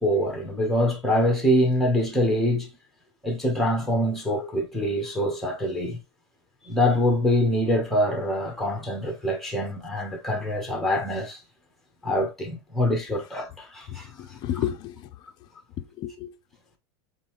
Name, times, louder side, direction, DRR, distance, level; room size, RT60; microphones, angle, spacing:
voice 1, 0.0-2.7 3.2-6.0 6.6-11.4 12.0-14.1, equal, ahead, 1.2 m, -24 dB
voice 2, 13.9-15.1 15.8-16.4, left 11 dB, 30° left, 0.5 m, -32 dB
3.9 x 3.6 x 3.1 m
supercardioid pair, 155°, 13 cm